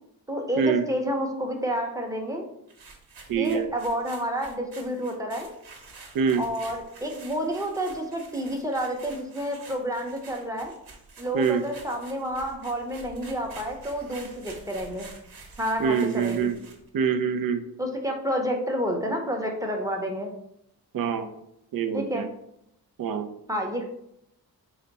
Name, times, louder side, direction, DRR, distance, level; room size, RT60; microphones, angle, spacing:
voice 1, 0.3-2.5 3.4-5.5 6.3-10.7 11.2-15.1 15.6-16.5 17.8-20.3 21.9-22.3 23.5-23.8, equal, 10° right, 2 dB, 0.8 m, -29 dB
sound 1, 2.7-16.9, right 3 dB, 80° right, 1.3 m, -48 dB
voice 2, 3.3-3.7 6.1-6.4 11.3-11.6 15.8-16.6 16.9-17.6 20.9-21.3 21.7-22.3 23.0-23.3, right 6 dB, 60° right, 7 dB, 0.6 m, -25 dB
4.9 x 2.2 x 4.0 m, 0.78 s
cardioid pair, 90°, 39 cm